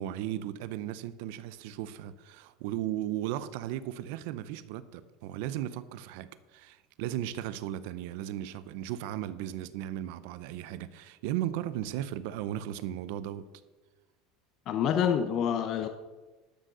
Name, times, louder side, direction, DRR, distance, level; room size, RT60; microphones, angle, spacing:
voice 1, 0.0-13.5, right 12 dB, 65° right, 0.7 m, -36 dB
voice 2, 14.7-15.9, left 8 dB, 35° left, 0.6 m, -27 dB
12.0 x 6.4 x 6.7 m
cardioid pair, 165°, 0 cm